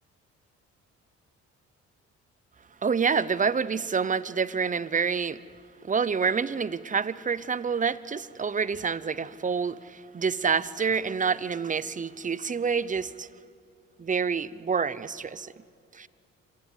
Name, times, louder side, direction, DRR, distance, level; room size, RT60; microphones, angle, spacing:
voice 1, 2.8-5.4 5.8-13.3 14.0-15.5 15.9-16.1, right 6 dB, 25° right, 0.7 m, -27 dB
27.0 x 18.0 x 8.1 m
cardioid pair, 90°, 30 cm